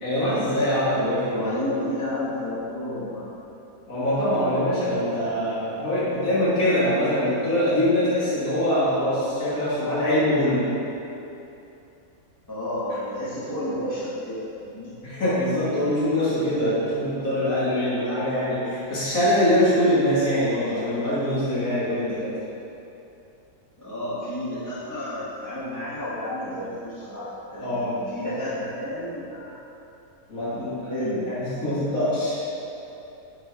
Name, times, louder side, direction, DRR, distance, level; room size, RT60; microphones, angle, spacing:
voice 1, 0.0-1.5 3.9-10.7 15.0-22.4 27.6-27.9 30.3-30.9 31.3-32.4, left 1 dB, 65° left, -11 dB, 2.3 m, -23 dB
voice 2, 1.3-3.2 12.5-14.9 23.8-29.6 30.5-31.3, left 1 dB, 15° left, -11 dB, 0.8 m, -31 dB
10.0 x 4.1 x 3.5 m, 2.8 s
omnidirectional pair, 1.6 m